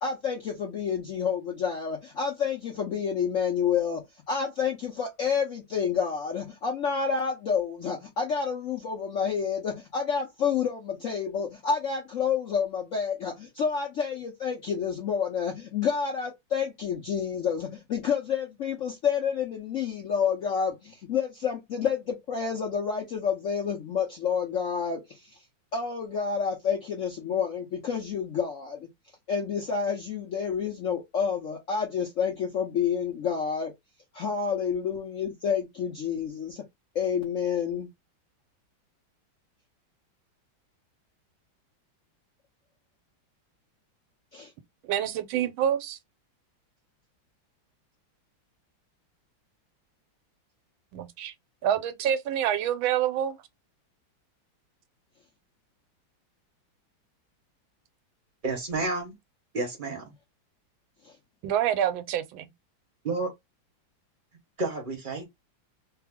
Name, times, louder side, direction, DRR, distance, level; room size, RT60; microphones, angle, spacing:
voice 1, 0.0-25.4 25.7-28.9 29.3-33.7 34.1-36.6 36.9-37.9 44.3-44.5 61.0-61.2, left 6 dB, 65° left, 0.7 m, -29 dB
voice 2, 44.8-46.0 50.9-51.3 51.6-53.4 61.4-62.5, right 10 dB, 85° right, 1.4 m, -27 dB
voice 3, 58.4-59.1 59.5-60.1 63.0-63.3 64.6-65.3, right 3 dB, 45° right, 0.7 m, -30 dB
3.3 x 2.0 x 3.4 m
omnidirectional pair, 2.2 m